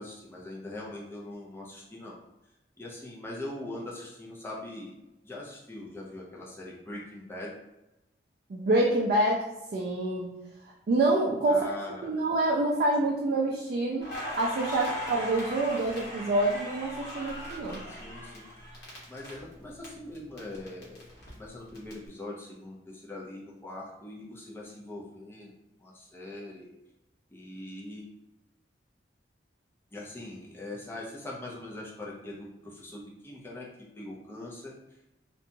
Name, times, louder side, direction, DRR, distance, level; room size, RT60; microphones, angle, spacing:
voice 1, 0.0-2.2 2.8-4.9 5.2-7.5 11.5-12.2 17.9-18.5 19.1-25.5 25.8-26.7 27.3-28.1 29.9-33.7 34.0-34.7, left 1 dB, 15° left, -4 dB, 0.4 m, -42 dB
voice 2, 8.5-9.4 9.7-10.3 10.9-11.7 12.0-14.1 14.4-17.8, right 2 dB, 50° right, -2 dB, 0.3 m, -26 dB
Crackle, 14.0-19.9 20.1-21.9, left 1 dB, 55° left, 0.9 m, -39 dB
2.8 x 2.2 x 2.6 m, 0.96 s
head